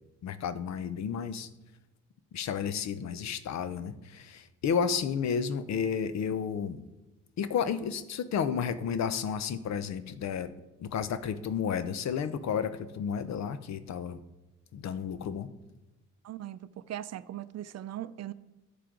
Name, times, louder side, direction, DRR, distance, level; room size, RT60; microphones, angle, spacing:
voice 1, 0.2-1.5 2.3-6.8 7.4-10.5 10.8-14.2 14.7-15.5, left 7 dB, 65° left, 0.8 m, -32 dB
voice 2, 16.2-16.6 16.9-18.3, right 12 dB, 60° right, 0.5 m, -39 dB
11.5 x 6.8 x 3.8 m
cardioid pair, 90°, 30 cm